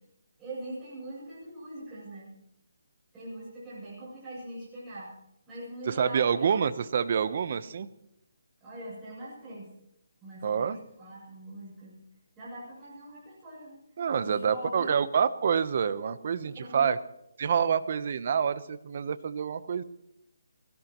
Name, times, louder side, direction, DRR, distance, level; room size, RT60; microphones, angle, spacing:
voice 1, 0.4-2.3 3.1-5.2 5.5-6.6 8.6-9.7 10.2-12.0 12.4-13.8 14.2-15.0 16.6-16.9, right 1 dB, 10° right, -9 dB, 7.6 m, -42 dB
voice 2, 5.9-7.9 10.4-10.8 14.0-17.0 17.4-19.8, right 7 dB, 40° right, 13 dB, 0.9 m, -27 dB
24.5 x 17.0 x 3.1 m, 0.81 s
hypercardioid pair, 170°, 0 cm